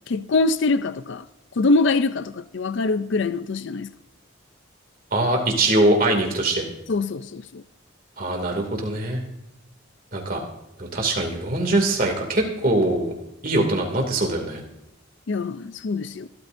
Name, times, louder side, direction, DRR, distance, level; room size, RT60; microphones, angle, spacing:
voice 1, 0.1-1.3 1.6-3.9 6.9-7.6 15.3-16.3, left 3 dB, 60° left, 0.5 m, -23 dB
voice 2, 5.1-6.7 8.2-9.2 10.1-10.4 10.8-13.1 13.4-14.6, right 1 dB, 40° right, 2.5 m, -22 dB
25.0 x 13.0 x 2.6 m
head